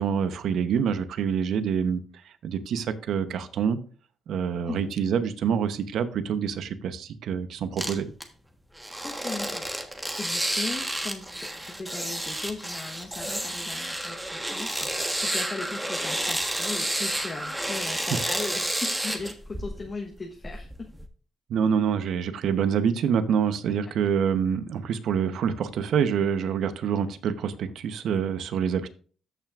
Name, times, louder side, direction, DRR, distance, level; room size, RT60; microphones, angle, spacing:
voice 1, 0.0-2.0 2.4-3.8 4.3-8.1 21.5-28.9, right 7 dB, 75° right, 0.8 m, -26 dB
sound 1, 7.8-8.2 8.8-19.9 20.4-21.1, right 1 dB, 10° right, 1.3 m, -30 dB
voice 2, 9.0-20.9 23.7-23.9, left 3 dB, 35° left, 1.1 m, -38 dB
13.5 x 6.0 x 2.5 m
cardioid pair, 100°, 0 cm